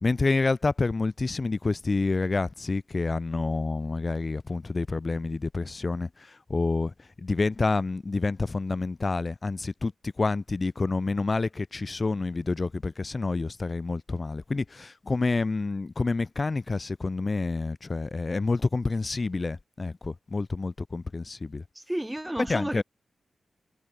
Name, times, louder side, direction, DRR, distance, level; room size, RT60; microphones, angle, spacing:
voice 1, 0.0-6.1 6.5-21.6 22.4-22.8, left 3 dB, 30° left, 1.0 m, -28 dB
voice 2, 21.9-22.8, right 1 dB, 10° right, 0.8 m, -31 dB
wide cardioid pair, 135°, 0 cm